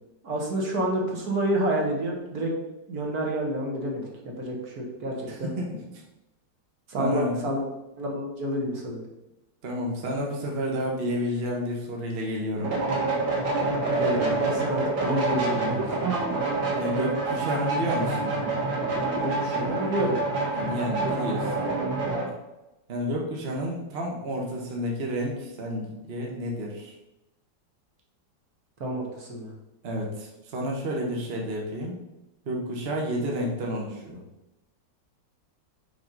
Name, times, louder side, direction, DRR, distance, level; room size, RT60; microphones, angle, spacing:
voice 1, 0.2-2.5 2.9-5.5 6.9-7.6 8.0-9.0 14.0-16.2 19.2-20.2 28.8-29.5, right 1 dB, 55° right, -1 dB, 1.7 m, -29 dB
voice 2, 5.3-5.8 7.0-7.5 9.6-12.7 16.8-18.3 20.5-21.5 22.2-22.3 22.9-26.9 29.8-32.0 32.5-34.2, equal, 40° right, -1 dB, 1.2 m, -30 dB
sound 1, 12.6-22.3, right 3 dB, 85° right, 2.2 m, -27 dB
5.6 x 4.7 x 5.2 m, 0.96 s
omnidirectional pair, 2.0 m